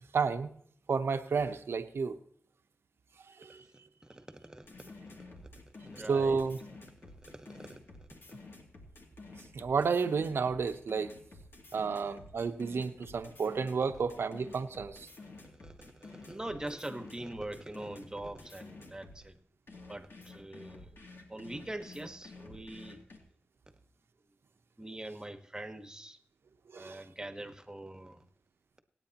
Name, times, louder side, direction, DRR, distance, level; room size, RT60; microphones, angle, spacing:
voice 1, 0.1-0.5 0.9-2.2 3.4-3.6 6.1-6.6 9.5-11.1 11.7-15.1 26.7-27.0, right 5 dB, 75° right, 9 dB, 0.9 m, -31 dB
voice 2, 4.1-4.7 5.1-5.2 5.8-6.4 7.0-7.8 11.7-11.8 15.2-19.4 19.9-20.9 21.3-23.0 24.8-26.2 26.7-28.2, right 1 dB, 15° right, 7 dB, 1.4 m, -43 dB
sound 1, 4.7-19.2 19.7-23.2, left 3 dB, 65° left, 2.6 m, -51 dB
26.0 x 9.0 x 3.0 m, 0.65 s
cardioid pair, 55°, 4 cm